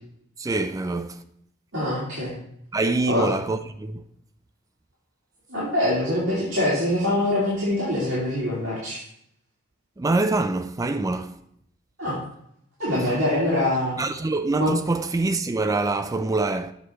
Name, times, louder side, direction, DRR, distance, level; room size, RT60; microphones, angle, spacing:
voice 1, 0.4-1.2 2.7-4.0 10.0-11.4 14.0-16.7, right 3 dB, 15° right, 0.3 m, -25 dB
voice 2, 1.7-2.3 3.1-3.3 5.5-9.0 12.0-12.2 12.8-14.0 14.6-14.7, left 1 dB, 70° right, 2.6 m, -24 dB
8.1 x 3.1 x 5.7 m
head